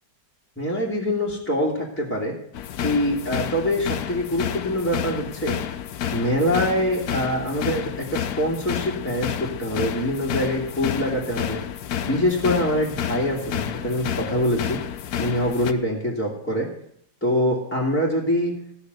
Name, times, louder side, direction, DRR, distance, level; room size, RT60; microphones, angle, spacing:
voice 1, 0.6-2.3 2.8-5.6 6.1-11.6 12.0-14.8 15.2-16.7 17.2-18.5, equal, 5° left, -3 dB, 2.3 m, -24 dB
sound 1, 2.5-15.7, left 9 dB, 60° left, 1.1 m, -30 dB
15.5 x 6.4 x 8.0 m, 0.67 s
omnidirectional pair, 2.1 m